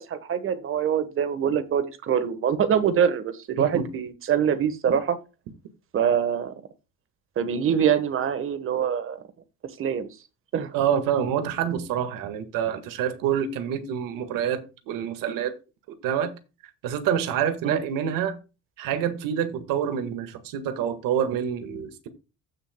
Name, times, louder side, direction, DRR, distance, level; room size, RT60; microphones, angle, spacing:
voice 1, 0.0-5.2 5.9-6.5 7.4-9.2 9.8-10.1 10.5-10.7 17.6-17.8, right 8 dB, 40° right, 1.3 m, -24 dB
voice 2, 3.6-3.9 10.7-15.5 16.0-16.3 16.8-18.4 18.8-22.1, right 9 dB, 85° right, 1.7 m, -27 dB
15.5 x 6.5 x 2.2 m
cardioid pair, 160°, 33 cm